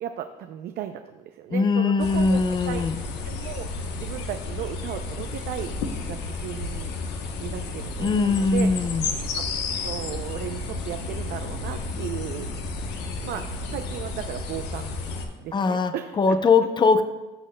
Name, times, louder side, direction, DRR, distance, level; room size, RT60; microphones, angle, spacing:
voice 1, 0.0-2.9 3.2-5.8 6.0-6.9 7.4-8.7 9.3-9.4 9.8-12.5 13.2-14.9 15.4-16.4, right 11 dB, 70° right, 7 dB, 0.5 m, -35 dB
voice 2, 1.5-2.9 8.0-9.1 15.5-17.0, left 4 dB, 25° left, 10 dB, 0.5 m, -21 dB
sound 1, 2.0-15.3, left 3 dB, 90° left, 0.9 m, -32 dB
14.0 x 6.4 x 2.2 m, 1.1 s
cardioid pair, 110°, 17 cm